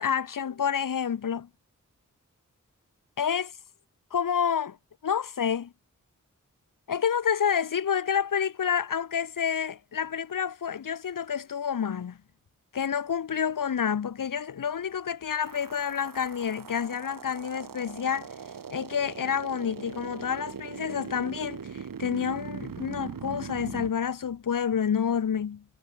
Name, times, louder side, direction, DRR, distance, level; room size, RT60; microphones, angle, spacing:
voice 1, 0.0-1.5 3.2-3.5 4.1-4.8 5.0-5.7 6.9-12.2 12.7-18.3 18.7-25.6, left 7 dB, 75° left, 1.2 m, -29 dB
sound 1, 15.4-23.9, right 7 dB, 85° right, 2.8 m, -40 dB
cardioid pair, 50°, 32 cm